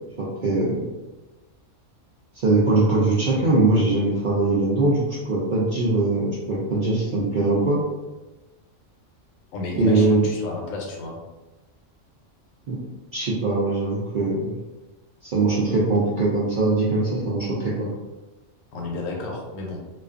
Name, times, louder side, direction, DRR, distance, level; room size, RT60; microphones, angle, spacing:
voice 1, 0.2-0.9 2.4-7.8 9.8-10.3 12.7-12.8 13.1-14.5 15.2-17.9, right 2 dB, 70° right, -6 dB, 0.4 m, -21 dB
voice 2, 9.5-11.2 18.7-19.8, left 2 dB, 90° left, 0 dB, 1.0 m, -32 dB
2.4 x 2.2 x 2.4 m, 1.1 s
omnidirectional pair, 1.3 m